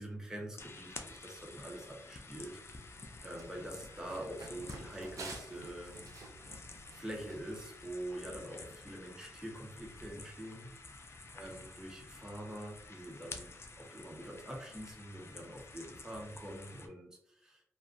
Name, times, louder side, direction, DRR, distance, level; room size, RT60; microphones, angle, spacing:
voice 1, 0.0-2.6 3.2-6.0 6.9-10.7 11.3-17.6, right 1 dB, 10° right, -1 dB, 0.7 m, -45 dB
sound 1, 0.6-16.9, left 3 dB, 45° left, 0.4 m, -51 dB
Run, 2.7-7.9, right 2 dB, 70° right, 0.5 m, -52 dB
2.4 x 2.3 x 2.3 m, 0.72 s
cardioid pair, 55°, 6 cm